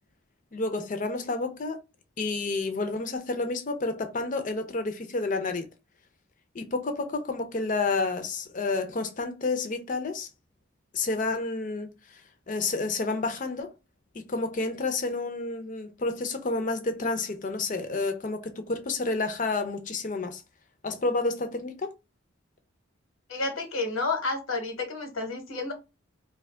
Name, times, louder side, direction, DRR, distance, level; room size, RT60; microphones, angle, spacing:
voice 1, 0.5-1.8 2.2-5.6 6.5-10.3 10.9-12.2 12.5-13.7 14.1-20.4 20.8-21.9, left 3 dB, 40° left, 0.5 m, -30 dB
voice 2, 23.3-25.7, left 3 dB, 90° left, 1.0 m, -30 dB
2.8 x 2.2 x 3.6 m
head